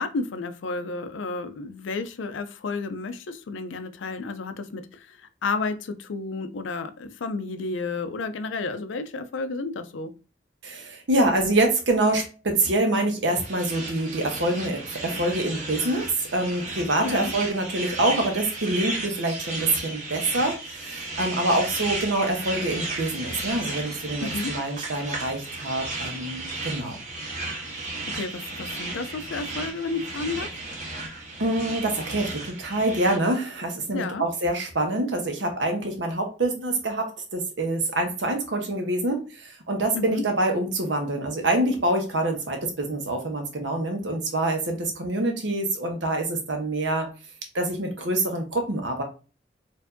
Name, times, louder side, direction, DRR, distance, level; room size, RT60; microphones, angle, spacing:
voice 1, 0.0-4.8 5.4-10.1 17.0-17.3 24.2-24.5 28.1-30.5 33.9-34.2 39.9-40.2, left 3 dB, 90° left, 11 dB, 0.5 m, -31 dB
voice 2, 10.6-27.0 31.4-47.1 47.5-49.0, right 2 dB, 70° right, 3 dB, 1.0 m, -26 dB
sound 1, 13.3-33.2, right 2 dB, 40° right, 1.1 m, -34 dB
4.5 x 2.6 x 2.6 m, 0.33 s
head